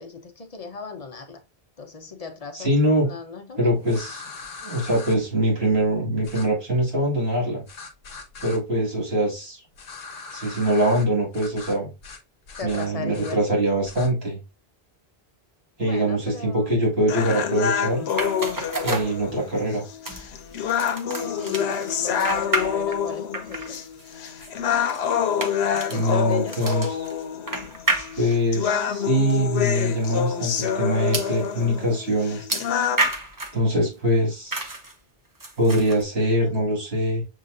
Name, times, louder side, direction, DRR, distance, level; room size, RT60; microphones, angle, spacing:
voice 1, 0.0-1.4 1.8-2.7 3.0-3.9 12.6-13.7 15.8-16.7 21.2-23.8 25.7-26.6, left 4 dB, 40° left, 0.7 m, -37 dB
voice 2, 2.5-3.1 3.6-4.2 4.6-7.6 8.4-9.6 10.3-11.9 12.6-14.4 15.8-18.1 18.8-19.8 25.9-27.1 28.2-32.5 33.5-34.7 35.6-37.2, equal, 75° right, 2.3 m, -23 dB
sound 1, 3.9-5.2 6.2-6.5 7.7-8.6 9.7-11.0 11.3-11.8 12.0-12.2 12.5-13.3 13.8-14.1, left 4 dB, 70° left, 1.0 m, -40 dB
sound 2, 17.1-33.1, left 8 dB, 90° left, 0.8 m, -27 dB
sound 3, 18.1-19.7 20.1-23.1 23.3-28.6 29.3-29.4 29.7-29.8 31.1-31.4 32.5-33.6 34.5-34.9 35.4-36.0, right 2 dB, 25° right, 0.5 m, -30 dB
6.5 x 2.8 x 2.5 m
omnidirectional pair, 1.1 m